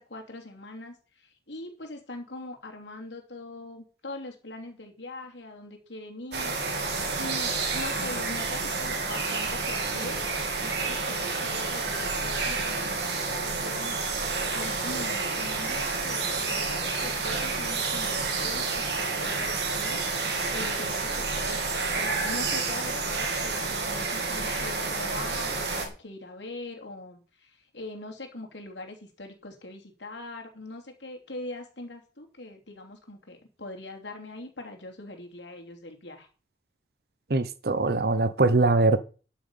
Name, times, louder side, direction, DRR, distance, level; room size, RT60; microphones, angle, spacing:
voice 1, 0.0-6.9 7.2-10.3 10.6-36.3, left 2 dB, 85° left, 3.1 m, -42 dB
sound 1, 6.3-25.9, right 4 dB, 75° right, 3.1 m, -29 dB
voice 2, 37.3-39.0, right 3 dB, 60° right, 0.8 m, -22 dB
12.5 x 7.3 x 5.6 m
head